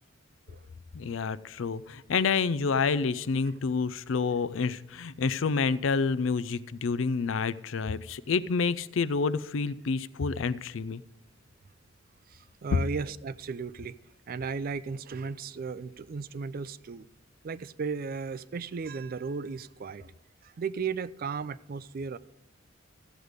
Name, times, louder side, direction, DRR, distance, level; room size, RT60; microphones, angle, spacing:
voice 1, 0.9-11.0, left 5 dB, 75° left, 16 dB, 0.5 m, -28 dB
voice 2, 12.3-14.0 14.3-17.1 17.4-20.1 20.4-22.2, right 5 dB, 45° right, 17 dB, 0.4 m, -35 dB
14.0 x 8.1 x 5.0 m, 0.86 s
head